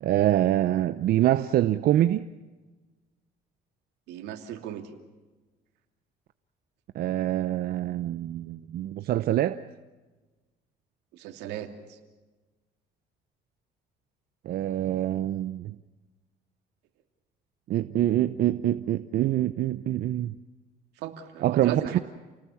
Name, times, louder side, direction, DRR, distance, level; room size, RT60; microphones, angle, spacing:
voice 1, 0.0-2.2 6.9-9.6 14.4-15.8 17.7-20.4 21.4-22.0, right 13 dB, 65° right, 0.8 m, -25 dB
voice 2, 4.1-4.9 11.1-12.0 21.0-22.0, right 11 dB, 90° right, 2.8 m, -36 dB
29.5 x 19.0 x 7.2 m
cardioid pair, 110°, 17 cm